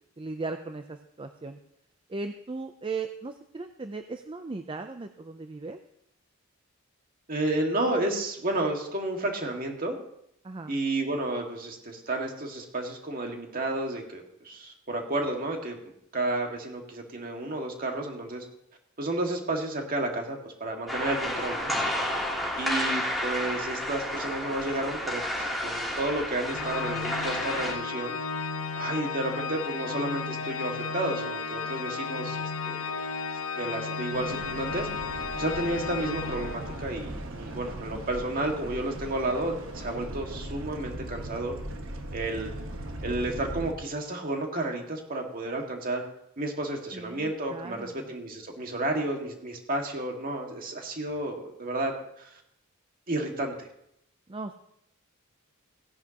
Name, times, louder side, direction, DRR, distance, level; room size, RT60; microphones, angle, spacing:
voice 1, 0.2-1.6 2.1-5.8 10.4-10.7 46.9-48.1 54.3-54.5, right 3 dB, 25° right, 7 dB, 0.5 m, -37 dB
voice 2, 7.3-10.0 10.7-18.4 19.0-21.7 22.6-28.1 28.7-33.0 33.6-34.9 35.4-41.6 42.1-42.5 43.0-46.0 46.4-52.4 53.1-53.7, right 2 dB, 40° right, 2 dB, 1.9 m, -31 dB
sound 1, 20.9-27.7, left 1 dB, ahead, 3.0 m, -31 dB
Organ, 26.5-37.1, left 5 dB, 70° left, 0.8 m, -34 dB
sound 2, 34.1-43.7, right 1 dB, 65° right, 1.3 m, -39 dB
17.0 x 10.5 x 2.9 m, 0.76 s
head